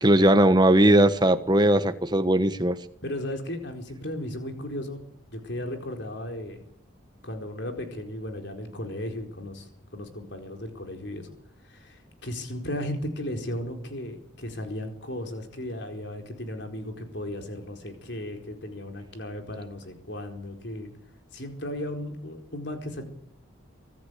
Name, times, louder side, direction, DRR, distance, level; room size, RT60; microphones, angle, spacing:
voice 1, 0.0-2.8, right 1 dB, 20° right, 10 dB, 1.3 m, -19 dB
voice 2, 3.0-5.0 5.3-6.6 7.2-9.6 9.9-11.3 11.7-20.9 21.3-23.0, left 1 dB, 55° left, 4 dB, 4.5 m, -35 dB
25.0 x 13.5 x 8.4 m, 0.71 s
head